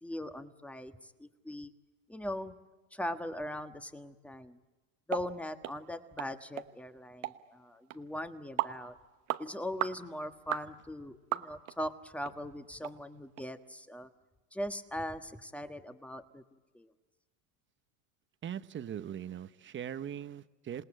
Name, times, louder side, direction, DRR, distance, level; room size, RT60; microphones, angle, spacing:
voice 1, 0.0-1.7 2.1-2.5 2.9-4.6 5.1-8.9 9.4-14.1 14.5-16.4 16.7-16.9, left 1 dB, 5° left, 8 dB, 1.4 m, -40 dB
sound 1, 5.1-5.3 5.6-5.8 6.2-6.3 6.6-6.7 7.2-7.4 7.9-8.0 8.6-8.8 9.3-9.4 9.8-10.0 10.5-10.7 11.3-11.8 12.2-12.3 12.8-12.9 13.4-13.5, right 16 dB, 85° right, 1.2 m, -34 dB
voice 2, 18.4-20.8, right 9 dB, 30° right, 13 dB, 1.0 m, -40 dB
27.5 x 19.0 x 8.8 m, 1.2 s
supercardioid pair, 105°, 39 cm